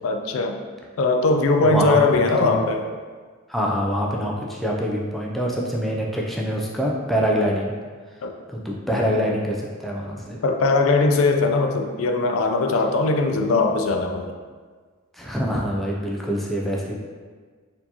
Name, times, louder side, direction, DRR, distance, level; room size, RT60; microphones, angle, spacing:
voice 1, 0.0-0.6 1.0-2.9 8.2-8.3 10.4-14.3, left 3 dB, 75° left, 4 dB, 0.4 m, -20 dB
voice 2, 1.6-2.6 3.5-7.7 8.5-10.4 15.1-17.0, equal, ahead, -3 dB, 0.3 m, -25 dB
4.2 x 2.8 x 2.8 m, 1.5 s
head